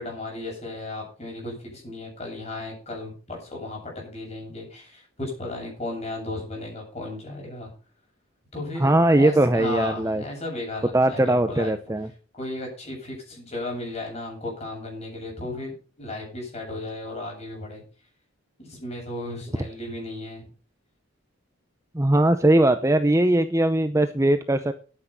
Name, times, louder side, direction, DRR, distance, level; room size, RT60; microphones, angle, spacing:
voice 1, 0.0-7.7 8.5-11.7 12.4-17.8 18.6-20.5, left 2 dB, 30° left, 0 dB, 8.0 m, -35 dB
voice 2, 8.8-10.2 10.9-12.1 21.9-24.7, right 1 dB, 15° right, 9 dB, 0.7 m, -20 dB
10.5 x 9.9 x 5.7 m, 0.36 s
head